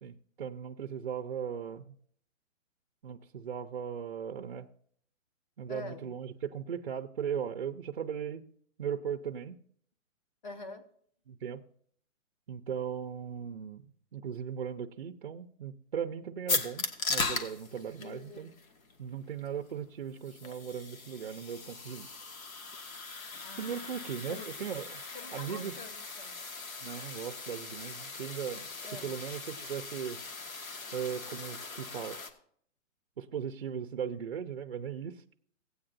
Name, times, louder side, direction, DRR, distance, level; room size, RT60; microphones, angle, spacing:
voice 1, 0.0-1.9 3.0-4.7 5.6-8.4 8.8-9.6 11.3-11.6 12.5-13.9 14.1-18.5 19.0-22.1 23.6-25.0 25.3-25.7 26.8-30.2 30.9-32.2 33.2-35.2, right 8 dB, 45° right, 6 dB, 0.5 m, -38 dB
voice 2, 5.7-6.1 10.4-10.8 17.8-18.5 23.4-24.5 25.1-26.4 28.8-29.2, left 3 dB, 35° left, 8 dB, 1.0 m, -46 dB
sound 1, 16.5-32.3, left 4 dB, 90° left, 1.6 m, -39 dB
17.0 x 8.7 x 2.5 m, 0.62 s
hypercardioid pair, 170°, 40 cm